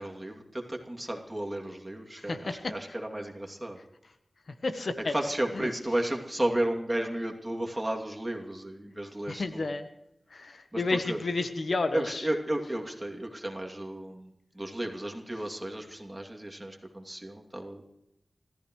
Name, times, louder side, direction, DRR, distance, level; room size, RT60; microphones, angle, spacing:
voice 1, 0.0-3.8 5.1-9.7 10.7-11.2 11.9-17.8, right 1 dB, 20° right, 2 dB, 2.7 m, -33 dB
voice 2, 2.3-2.7 4.6-5.1 5.5-5.7 9.3-9.9 10.3-12.3, left 3 dB, 75° left, 8 dB, 1.2 m, -31 dB
28.5 x 14.5 x 3.2 m, 0.86 s
wide cardioid pair, 60°, 0 cm